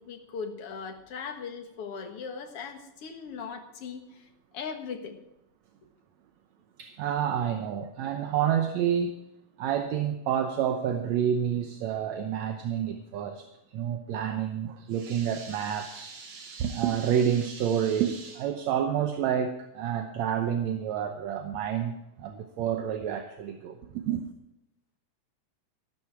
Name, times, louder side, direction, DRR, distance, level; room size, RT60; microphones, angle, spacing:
voice 1, 0.0-5.2, left 5 dB, 55° left, 5 dB, 2.3 m, -39 dB
voice 2, 6.8-9.2 9.6-13.5 13.7-21.9 22.2-23.8 24.0-24.2, right 9 dB, 75° right, 6 dB, 2.1 m, -29 dB
14.0 x 12.0 x 4.8 m, 0.87 s
omnidirectional pair, 3.4 m